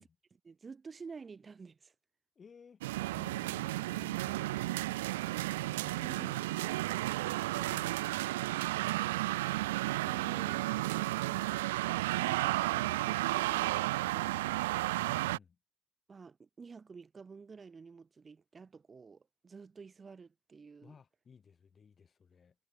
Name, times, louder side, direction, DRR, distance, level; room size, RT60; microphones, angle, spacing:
voice 1, 0.0-1.9 6.0-6.3 10.0-14.6 16.1-20.9, right 5 dB, 30° right, 2.1 m, -51 dB
voice 2, 2.4-9.1 15.0-15.6 20.8-22.6, left 6 dB, 35° left, 4.2 m, -57 dB
sound 1, 2.8-15.4, right 18 dB, 75° right, 0.4 m, -33 dB
figure-of-eight pair, 50°, 0 cm